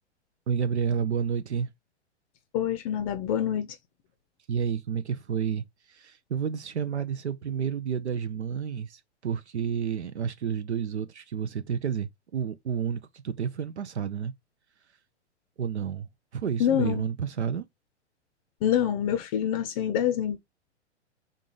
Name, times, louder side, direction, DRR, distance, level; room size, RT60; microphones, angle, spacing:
voice 1, 0.5-1.7 4.5-14.3 15.6-16.1 16.3-17.7, right 7 dB, 70° right, 0.6 m, -30 dB
voice 2, 2.5-3.7 16.6-17.0 18.6-20.4, left 10 dB, 30° left, 0.6 m, -26 dB
3.8 x 3.7 x 3.8 m
figure-of-eight pair, 110°, 35 cm